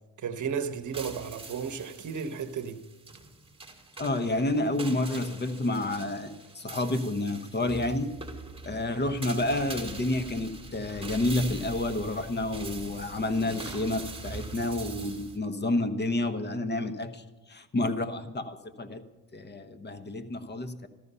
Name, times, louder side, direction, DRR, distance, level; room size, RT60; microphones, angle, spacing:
voice 1, 0.2-2.8, right 6 dB, 40° right, 1.2 m, -33 dB
sound 1, 0.6-15.4, right 3 dB, 15° right, 2.2 m, -43 dB
voice 2, 4.0-8.1 8.6-19.0 19.3-20.9, left 2 dB, 25° left, 1.1 m, -30 dB
14.0 x 13.5 x 5.6 m
cardioid pair, 95°, 44 cm